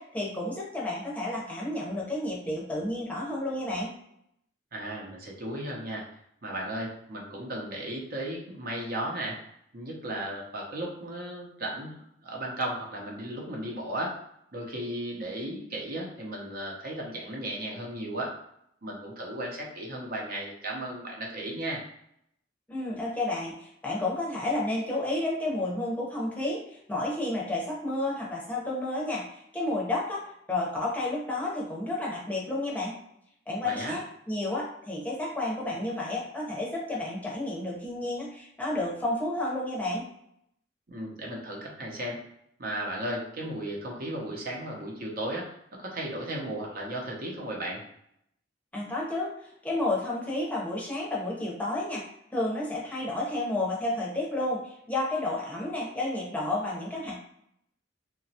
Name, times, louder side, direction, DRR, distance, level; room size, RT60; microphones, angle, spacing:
voice 1, 0.0-3.9 22.7-30.2 30.5-32.9 33.5-40.0 48.7-49.3 49.6-52.0 52.3-57.2, left 2 dB, 10° left, -4 dB, 0.7 m, -31 dB
voice 2, 4.7-6.0 6.4-9.4 9.7-14.2 14.5-18.3 18.8-21.8 33.6-34.0 40.9-42.2 42.6-45.5 45.8-47.8, right 1 dB, 55° right, -2 dB, 0.7 m, -35 dB
2.9 x 2.2 x 2.7 m, 0.74 s
head